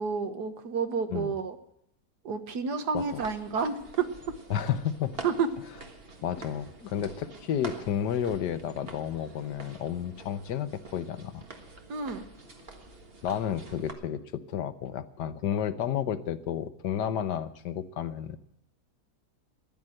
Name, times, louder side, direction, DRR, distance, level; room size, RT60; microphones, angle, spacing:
voice 1, 0.0-1.6 2.3-4.1 5.2-5.5 11.9-12.2, right 5 dB, 70° right, 8 dB, 1.8 m, -30 dB
sound 1, 3.0-13.9, right 3 dB, 35° right, 1.8 m, -47 dB
voice 2, 4.5-5.2 6.2-11.4 13.2-18.4, left 9 dB, 80° left, 12 dB, 1.5 m, -31 dB
14.5 x 11.0 x 7.6 m, 0.76 s
omnidirectional pair, 1.8 m